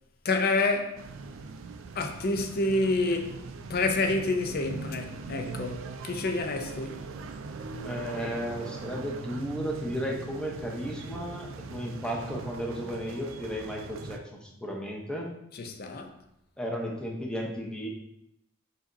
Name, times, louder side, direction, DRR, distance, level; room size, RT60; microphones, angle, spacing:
voice 1, 0.2-1.0 1.9-3.4 3.7-7.0 15.5-16.2, left 2 dB, 50° left, 0.5 m, -28 dB
sound 1, 1.0-14.2, right 3 dB, 70° right, 0.4 m, -41 dB
voice 2, 7.8-15.3 16.6-17.9, equal, 5° left, 0.7 m, -34 dB
4.8 x 4.0 x 2.6 m
head